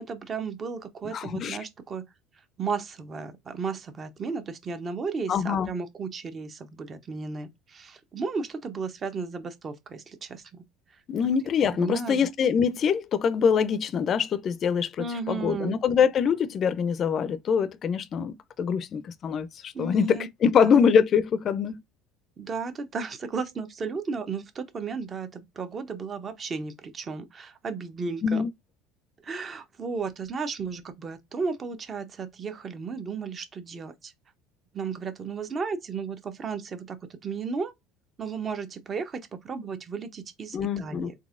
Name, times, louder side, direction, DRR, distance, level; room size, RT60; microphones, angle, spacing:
voice 1, 0.0-2.1 2.6-10.6 11.8-12.2 15.0-15.8 19.7-20.3 20.6-20.7 22.4-28.4 29.2-34.1 34.7-37.7 38.2-41.1, right 5 dB, 35° right, 0.7 m, -34 dB
voice 2, 1.1-1.6 5.3-5.7 11.1-21.8 28.2-28.5 40.5-41.1, left 7 dB, 45° left, 0.4 m, -24 dB
3.9 x 2.8 x 2.4 m
supercardioid pair, 95°, 0 cm